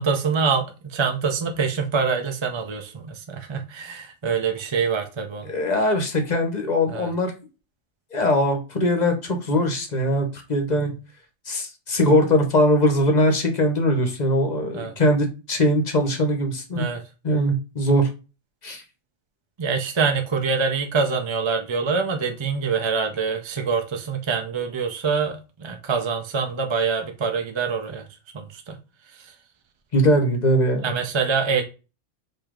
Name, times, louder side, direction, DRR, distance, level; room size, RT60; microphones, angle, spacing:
voice 1, 0.0-5.5 6.9-7.1 14.7-14.9 16.7-17.0 19.6-28.1 28.3-28.7 30.8-31.6, right 5 dB, 35° right, 0.5 m, -25 dB
voice 2, 5.5-7.3 8.1-10.9 11.5-16.9 17.2-18.1 18.6-18.8 29.9-30.9, equal, 40° left, 1.0 m, -21 dB
5.0 x 2.7 x 3.6 m
omnidirectional pair, 1.3 m